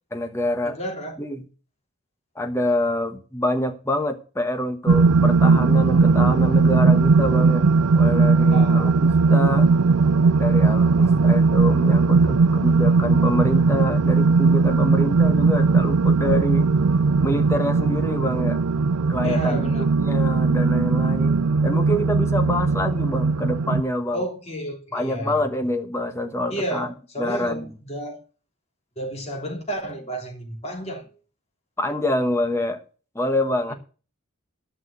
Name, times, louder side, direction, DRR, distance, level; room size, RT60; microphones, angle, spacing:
voice 1, 0.1-0.8 1.2-1.4 2.4-7.6 7.9-8.9 9.3-9.7 10.4-16.7 17.2-18.6 19.1-19.7 20.0-24.2 24.9-26.9 27.2-27.7 31.8-32.8 33.1-33.7, left 1 dB, 10° left, 1.2 m, -26 dB
voice 2, 0.7-1.2 8.5-8.9 10.8-11.3 19.2-19.8 24.1-25.5 26.5-28.2 29.0-31.1 33.7-33.8, right 1 dB, 30° left, 3.1 m, -31 dB
sound 1, 4.9-23.8, right 4 dB, 85° right, 0.5 m, -18 dB
11.0 x 6.2 x 8.2 m
head